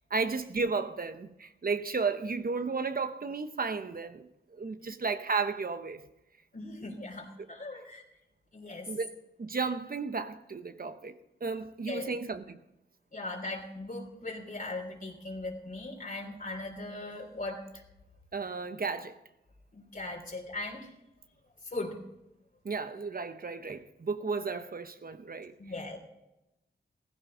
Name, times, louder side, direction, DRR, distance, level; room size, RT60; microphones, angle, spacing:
voice 1, 0.1-6.0 8.9-9.1 9.4-11.1 11.4-12.6 18.3-19.2 22.6-25.5, right 4 dB, 50° right, 1.0 m, -33 dB
voice 2, 6.5-8.0 8.5-8.9 11.9-12.1 13.1-17.6 19.7-20.9 21.6-22.0 25.6-26.0, left 2 dB, 45° left, 3.1 m, -39 dB
16.0 x 15.0 x 3.9 m
wide cardioid pair, 90°, 19 cm